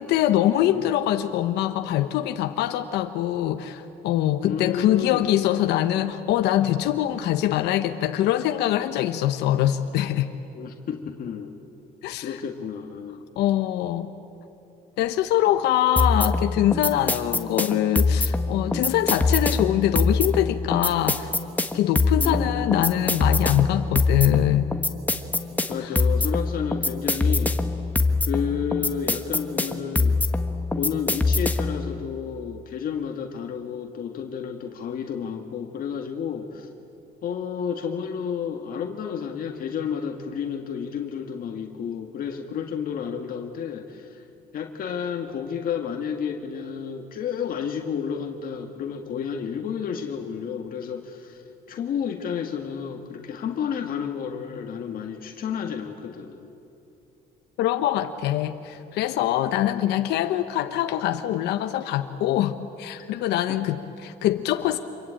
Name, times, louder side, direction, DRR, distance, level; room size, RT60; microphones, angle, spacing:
voice 1, 0.0-10.3 12.0-12.4 13.4-14.1 15.0-21.3 21.7-24.7 25.8-25.9 57.6-64.8, left 12 dB, 85° left, 8 dB, 1.0 m, -23 dB
voice 2, 0.6-0.9 4.4-5.3 10.5-11.5 12.2-13.2 22.1-22.9 25.7-27.6 28.2-30.2 30.8-36.7 37.2-44.3 44.5-56.5 59.6-59.9 63.1-63.2 63.5-63.6, left 7 dB, 60° left, 3 dB, 1.8 m, -31 dB
sound 1, 16.0-31.8, left 3 dB, 10° left, 1.5 m, -23 dB
27.0 x 23.0 x 9.0 m, 2.8 s
cardioid pair, 110°, 17 cm